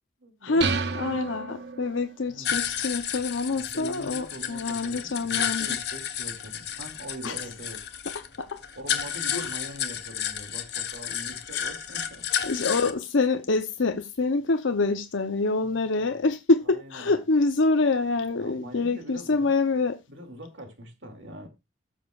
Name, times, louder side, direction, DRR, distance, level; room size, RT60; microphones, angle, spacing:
voice 1, 0.2-1.1 2.3-2.5 3.5-7.8 8.7-12.7 15.6-16.1 16.7-17.2 18.4-19.5 20.1-21.5, right 1 dB, 80° right, 2.4 m, -43 dB
sound 1, 0.6-2.2, right 4 dB, 60° right, 1.0 m, -30 dB
voice 2, 0.9-5.7 7.2-7.5 8.1-8.6 9.3-9.5 12.4-20.0, left 3 dB, 85° left, 0.7 m, -26 dB
sound 2, 2.4-12.9, left 9 dB, 60° left, 1.1 m, -32 dB
19.0 x 7.2 x 2.4 m
head